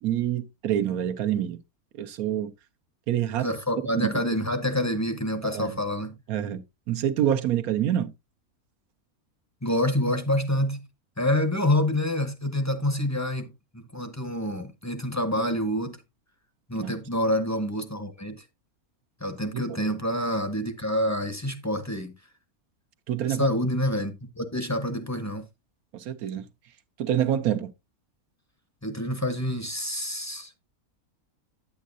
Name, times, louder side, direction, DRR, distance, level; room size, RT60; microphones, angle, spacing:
voice 1, 0.0-1.6 2.0-2.5 3.1-3.5 3.9-4.1 5.4-5.8 6.3-6.6 6.9-8.1 16.8-16.9 19.7-20.0 23.1-23.5 25.9-26.4 27.0-27.7, right 10 dB, 80° right, 1.1 m, -26 dB
voice 2, 3.4-6.2 9.6-10.9 11.2-16.0 16.7-18.4 19.2-22.1 23.3-25.5 28.8-30.6, left 1 dB, 15° left, 0.6 m, -27 dB
9.1 x 8.4 x 2.5 m
omnidirectional pair, 1.5 m